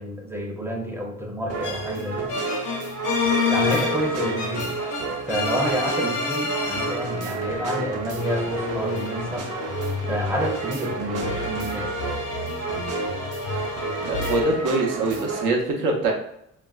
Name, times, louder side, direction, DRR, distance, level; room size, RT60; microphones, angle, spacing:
voice 1, 0.0-2.3 3.5-4.8 5.2-9.5 10.1-12.0, equal, 10° right, 1 dB, 0.5 m, -29 dB
sound 1, 1.5-15.5, right 4 dB, 55° right, 0.6 m, -31 dB
sound 2, 1.6-7.3 8.2-14.4, left 4 dB, 85° left, 0.6 m, -29 dB
voice 2, 14.0-16.1, right 2 dB, 90° right, 1 dB, 0.7 m, -24 dB
3.1 x 2.4 x 2.3 m, 0.74 s
cardioid pair, 90°, 30 cm